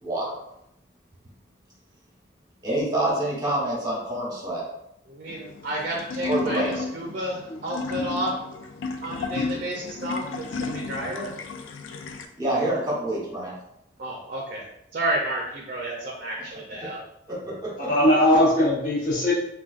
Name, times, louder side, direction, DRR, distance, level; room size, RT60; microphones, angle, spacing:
voice 1, 0.0-0.3 2.6-4.6 6.2-6.8 12.4-13.5 17.8-17.9, right 1 dB, 20° right, -5 dB, 1.0 m, -26 dB
voice 2, 5.2-8.3 9.0-11.3 14.0-14.6 14.9-17.0, right 1 dB, 50° right, -2 dB, 0.5 m, -31 dB
sound 1, 5.3-12.3, left 3 dB, 85° left, 0.3 m, -33 dB
voice 3, 17.8-19.3, left 1 dB, 45° left, -7 dB, 0.8 m, -20 dB
3.6 x 2.2 x 2.4 m, 0.80 s
head